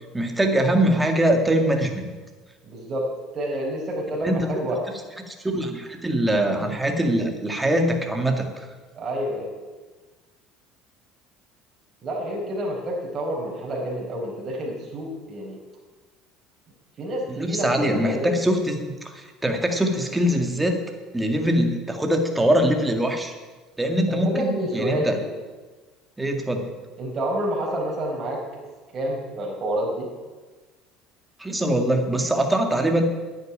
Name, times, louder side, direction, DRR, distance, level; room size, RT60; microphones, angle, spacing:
voice 1, 0.1-2.1 4.2-4.5 5.3-8.7 17.3-20.8 21.1-23.3 23.8-25.2 26.2-26.7 31.4-33.0, right 1 dB, 10° right, 4 dB, 2.1 m, -23 dB
voice 2, 2.6-3.1 3.3-4.8 8.9-9.5 12.0-15.6 17.0-18.3 24.1-25.1 27.0-28.4 28.9-30.1, right 1 dB, 35° right, -3 dB, 4.5 m, -28 dB
10.5 x 8.9 x 10.0 m, 1.3 s
supercardioid pair, 110°, 0 cm